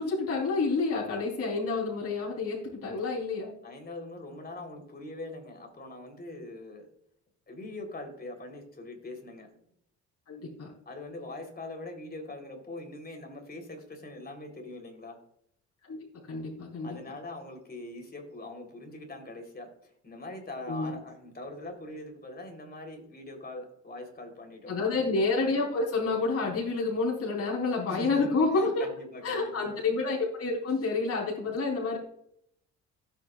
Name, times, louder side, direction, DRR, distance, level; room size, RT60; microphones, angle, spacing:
voice 1, 0.0-3.5 10.3-10.7 15.8-16.0 16.3-16.9 20.7-20.9 24.7-28.9 29.2-32.0, left 3 dB, 50° left, -3 dB, 3.8 m, -29 dB
voice 2, 3.6-6.9 7.5-9.5 10.9-15.2 16.8-24.9 25.5-25.7 27.9-29.8, left 2 dB, 30° left, 3 dB, 3.7 m, -42 dB
16.5 x 8.6 x 2.5 m, 0.72 s
cardioid pair, 90°, 30 cm